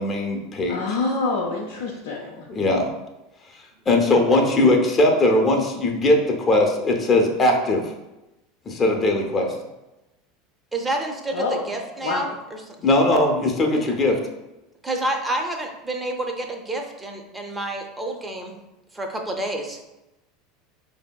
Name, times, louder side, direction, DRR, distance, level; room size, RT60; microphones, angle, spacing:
voice 1, 0.0-0.8 2.5-2.9 3.9-7.8 8.7-9.5 12.8-14.2, left 2 dB, 30° left, 2 dB, 0.7 m, -19 dB
voice 2, 0.7-2.5 11.3-11.7 12.0-12.4, left 3 dB, 65° left, -2 dB, 0.5 m, -26 dB
voice 3, 10.7-12.6 13.8-13.9 14.8-18.5 18.9-19.8, right 1 dB, 15° right, 3 dB, 0.6 m, -29 dB
4.9 x 2.7 x 2.2 m, 0.98 s
figure-of-eight pair, 75°, 0 cm